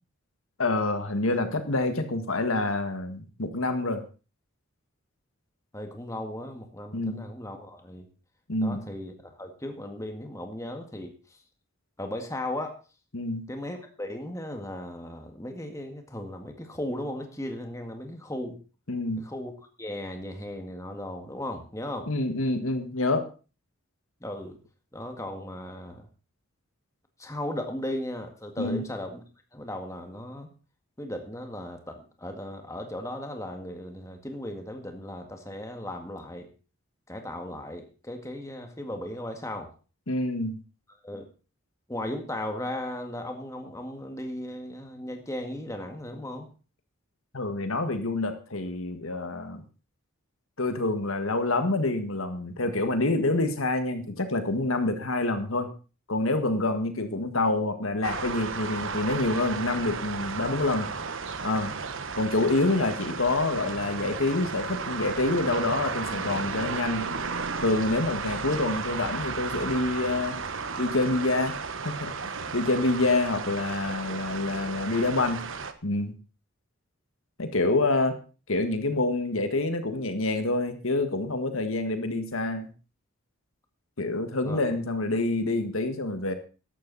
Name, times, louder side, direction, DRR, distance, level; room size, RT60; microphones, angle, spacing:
voice 1, 0.6-4.0 6.9-7.2 8.5-8.9 13.1-13.4 18.9-19.3 22.1-23.3 28.6-28.8 40.1-40.6 47.3-49.6 50.6-55.7 56.1-60.9 61.4-61.7 62.2-67.1 67.6-70.4 70.8-71.5 71.8-72.1 72.5-75.4 75.8-76.1 77.4-78.2 78.5-82.7 84.0-86.3, left 2 dB, 75° left, 8 dB, 1.7 m, -27 dB
voice 2, 5.7-8.1 8.6-9.1 9.4-11.1 12.0-12.8 13.5-18.6 19.2-19.5 19.8-22.1 24.2-24.6 24.9-26.1 27.2-29.2 29.5-30.5 31.0-36.5 37.1-39.7 41.0-41.3 41.9-46.5 84.5-84.6, left 1 dB, 15° left, 4 dB, 1.8 m, -36 dB
sound 1, 58.0-75.7, right 5 dB, 65° right, 1.1 m, -34 dB
14.5 x 11.5 x 4.1 m, 0.34 s
head